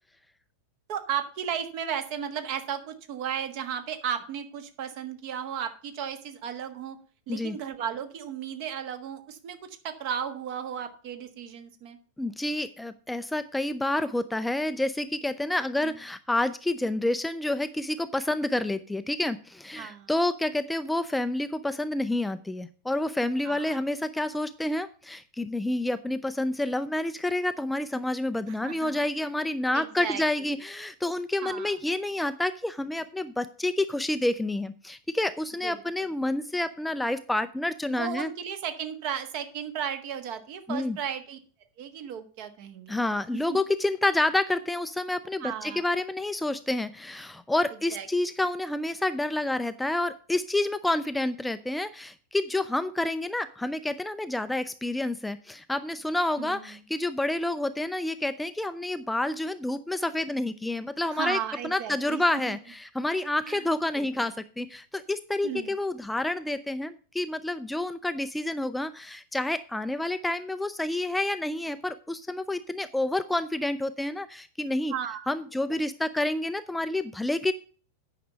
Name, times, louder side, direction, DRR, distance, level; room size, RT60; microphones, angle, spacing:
voice 1, 0.9-7.0 7.3-12.0 15.8-15.9 19.8-20.1 23.4-23.8 28.5-28.9 29.7-30.2 31.4-31.7 35.6-35.7 37.9-41.4 41.8-43.0 43.5-43.6 45.4-45.8 47.9-48.1 56.4-56.8 61.1-62.6 63.4-63.6 64.0-64.3 65.4-65.7 74.9-75.3, right 8 dB, 45° right, 9 dB, 1.4 m, -35 dB
voice 2, 12.2-38.3 40.7-41.0 42.9-61.4 61.6-74.9 75.3-77.5, left 1 dB, 5° left, 11 dB, 0.4 m, -29 dB
9.2 x 5.9 x 5.3 m, 0.41 s
figure-of-eight pair, 90°, 0 cm